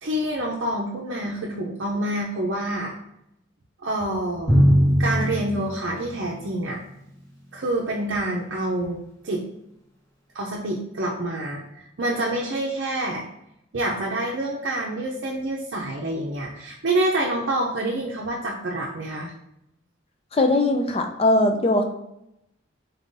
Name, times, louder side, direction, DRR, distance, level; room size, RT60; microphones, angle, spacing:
voice 1, 0.0-2.9 3.8-4.6 5.0-6.8 7.5-9.0 9.2-9.5 10.3-13.2 13.7-19.3, right 1 dB, 65° right, -3 dB, 0.6 m, -27 dB
Drum, 4.5-6.9, equal, 15° left, 1.2 m, -21 dB
voice 2, 20.3-21.8, left 2 dB, 30° left, 5 dB, 0.4 m, -20 dB
4.0 x 3.7 x 2.6 m, 0.82 s
head